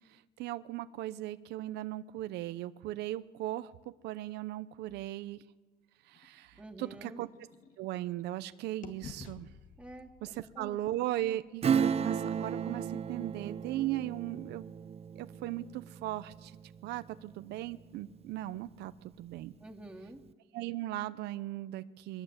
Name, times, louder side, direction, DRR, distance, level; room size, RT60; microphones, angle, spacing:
voice 1, 0.1-5.4 6.0-7.3 7.8-9.5 10.2-10.3 10.6-14.6 15.2-16.6 16.8-19.5 20.5-22.2, right 14 dB, 85° right, 12 dB, 0.8 m, -38 dB
sound 1, 6.1-8.4 8.8-12.8, left 5 dB, 50° left, 2.1 m, -54 dB
voice 2, 6.6-7.2 9.8-10.9 19.6-20.2, right 1 dB, 5° right, 1 dB, 2.7 m, -48 dB
Acoustic guitar / Strum, 11.6-17.8 18.2-18.3, right 7 dB, 35° right, 0.6 m, -34 dB
23.0 x 19.5 x 8.2 m, 1.3 s
cardioid pair, 110°, 17 cm